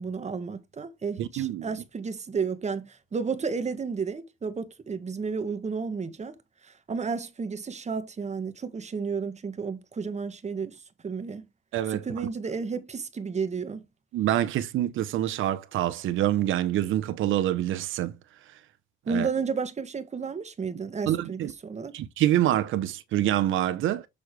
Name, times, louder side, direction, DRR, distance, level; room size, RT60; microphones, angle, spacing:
voice 1, 0.0-6.4 6.6-11.4 11.9-13.8 19.1-22.0, right 5 dB, 35° right, 1.5 m, -32 dB
voice 2, 1.2-1.7 11.7-12.0 14.1-18.2 19.1-19.3 21.1-21.5 21.9-24.1, right 12 dB, 80° right, 0.9 m, -26 dB
6.9 x 6.4 x 3.3 m
cardioid pair, 90°, 20 cm